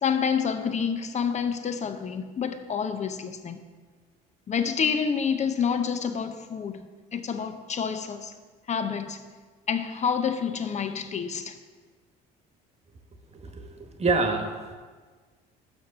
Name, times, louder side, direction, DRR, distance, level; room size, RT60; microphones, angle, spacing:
voice 1, 0.0-3.6 4.5-6.8 7.1-8.3 8.7-9.2 9.7-11.6, left 6 dB, 35° left, 0.8 m, -28 dB
voice 2, 13.3-14.7, right 3 dB, 35° right, 1.3 m, -27 dB
6.3 x 6.2 x 5.7 m
supercardioid pair, 75°, 20 cm